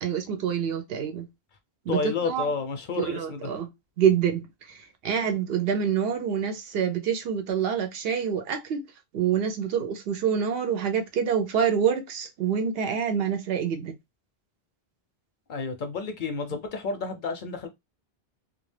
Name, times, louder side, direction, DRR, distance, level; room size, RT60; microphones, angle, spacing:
voice 1, 0.0-1.3 1.9-2.0 2.3-2.5 3.0-3.7 4.0-4.5 5.0-8.8 9.1-13.9, right 8 dB, 75° right, 0.8 m, -26 dB
voice 2, 1.9-3.5 15.5-17.7, left 4 dB, 60° left, 0.6 m, -30 dB
2.3 x 2.2 x 3.2 m
omnidirectional pair, 1.1 m